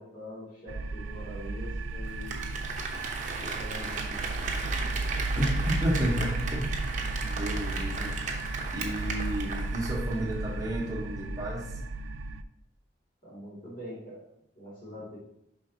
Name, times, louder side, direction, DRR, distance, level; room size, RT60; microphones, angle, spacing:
voice 1, 0.0-2.6 3.4-4.2 4.6-4.9 13.2-14.3 14.6-15.2, left 1 dB, 45° left, -6 dB, 2.5 m, -44 dB
sound 1, 0.7-12.4, right 2 dB, 85° right, 0.4 m, -34 dB
Applause, 2.1-10.3 10.6-10.7, right 4 dB, 40° right, 0.8 m, -36 dB
voice 2, 5.4-6.8 7.2-8.1 8.7-11.7, equal, 20° right, -3 dB, 1.1 m, -32 dB
6.7 x 5.3 x 2.8 m, 0.80 s
head